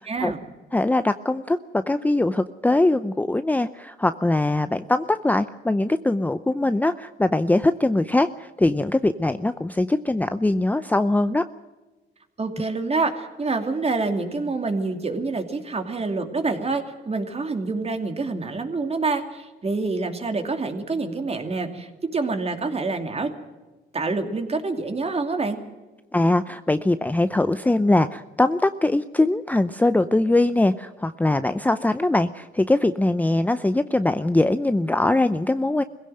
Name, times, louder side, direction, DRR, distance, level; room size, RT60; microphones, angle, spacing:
voice 1, 0.1-0.4 12.4-23.3 23.9-25.6, right 3 dB, 30° right, 6 dB, 2.7 m, -27 dB
voice 2, 0.7-11.4 26.1-35.8, left 2 dB, 10° left, 11 dB, 0.6 m, -22 dB
20.5 x 16.5 x 7.8 m, 1.2 s
cardioid pair, 90°, 20 cm